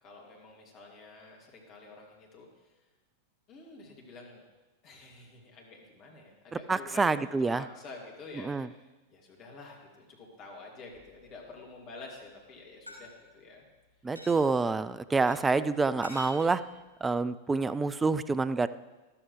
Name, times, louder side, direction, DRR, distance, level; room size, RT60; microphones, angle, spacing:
voice 1, 0.0-2.7 3.5-4.4 4.8-8.8 9.1-13.6, left 3 dB, 35° left, -1 dB, 2.6 m, -49 dB
voice 2, 6.7-7.6 8.4-8.7 14.0-16.6 17.0-18.7, right 4 dB, 15° right, 14 dB, 0.3 m, -27 dB
sound 1, 10.9-11.5 12.9-13.0 14.2-14.4 15.3-15.4 16.0-16.4, equal, 85° right, 2.9 m, -45 dB
13.0 x 12.5 x 3.3 m, 1.1 s
figure-of-eight pair, 90°, 0 cm